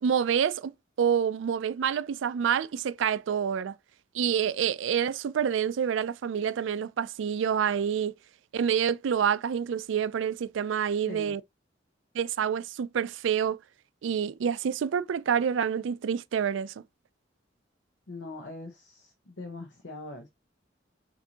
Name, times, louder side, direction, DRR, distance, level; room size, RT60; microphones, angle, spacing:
voice 1, 0.0-3.7 4.1-8.1 8.5-11.4 12.1-13.6 14.0-16.7, right 8 dB, 85° right, 0.4 m, -27 dB
voice 2, 18.1-20.3, left 2 dB, 75° left, 0.8 m, -42 dB
5.9 x 2.6 x 2.8 m
head